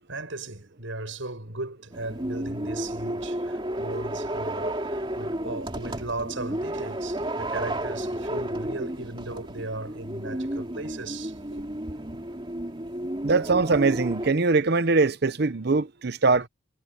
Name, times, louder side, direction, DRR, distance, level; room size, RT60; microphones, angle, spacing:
voice 1, 0.1-11.6, right 2 dB, 70° right, 6.7 m, -37 dB
sound 1, 1.9-14.3, right 1 dB, 25° right, 2.9 m, -32 dB
voice 2, 13.2-16.5, right 3 dB, 50° right, 0.7 m, -22 dB
head